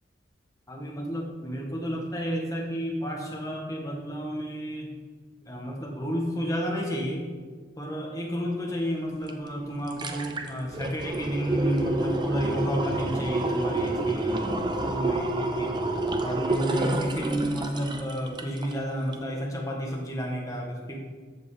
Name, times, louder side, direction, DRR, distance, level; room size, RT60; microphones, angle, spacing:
voice 1, 0.7-4.9 5.4-7.3 7.8-21.0, equal, 20° left, -1 dB, 1.7 m, -31 dB
sound 1, 9.3-9.4 9.7-18.8 19.1-19.2, right 2 dB, 25° right, 0.7 m, -29 dB
13.5 x 5.4 x 5.0 m, 1.5 s
head